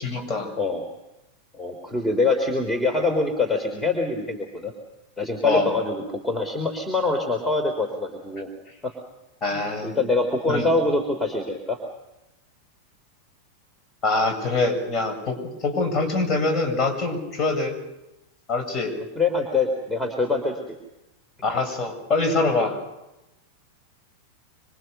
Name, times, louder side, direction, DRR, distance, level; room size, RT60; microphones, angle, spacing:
voice 1, 0.0-0.5 5.4-5.7 9.4-10.0 10.5-10.7 14.0-17.8 18.5-19.0 21.4-22.8, left 3 dB, 30° left, 6 dB, 7.4 m, -24 dB
voice 2, 1.5-4.7 5.2-8.5 8.8-8.9 9.8-11.8 19.2-20.7, left 3 dB, 10° left, 5 dB, 3.6 m, -24 dB
26.5 x 26.0 x 6.8 m, 0.96 s
figure-of-eight pair, 90°, 0 cm